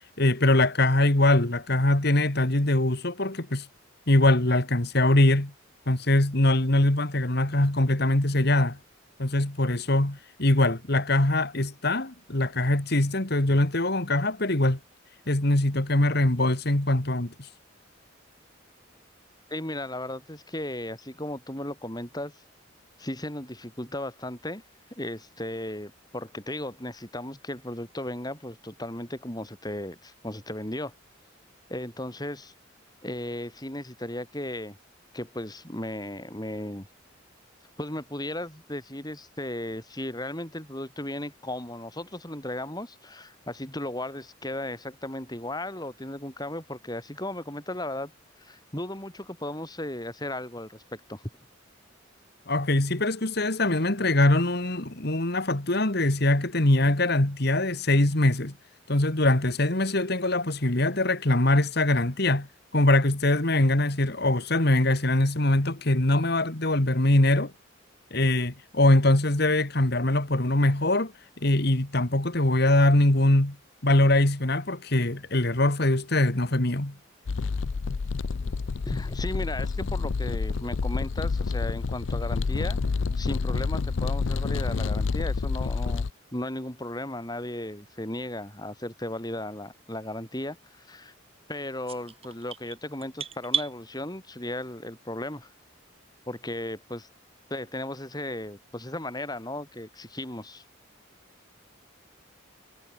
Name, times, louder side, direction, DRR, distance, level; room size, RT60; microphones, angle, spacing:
voice 1, 0.2-3.7 4.1-5.5 5.9-8.8 9.2-14.8 15.3-17.3 52.5-58.5 58.9-62.5 62.7-67.5 68.1-71.1 71.4-73.6 73.8-76.9, left 1 dB, 55° left, 2.1 m, -23 dB
voice 2, 19.5-22.4 23.0-24.6 25.0-30.9 31.7-32.5 33.0-34.8 35.1-36.9 37.8-48.1 48.4-50.8 51.1-51.2 78.8-82.8 83.2-86.0 86.3-91.1 91.5-95.5 96.3-97.1 97.5-100.6, left 1 dB, 20° left, 5.1 m, -35 dB
sound 1, 77.3-86.1, left 4 dB, 70° left, 0.5 m, -28 dB
sound 2, 91.9-93.7, right 7 dB, 30° right, 3.2 m, -33 dB
head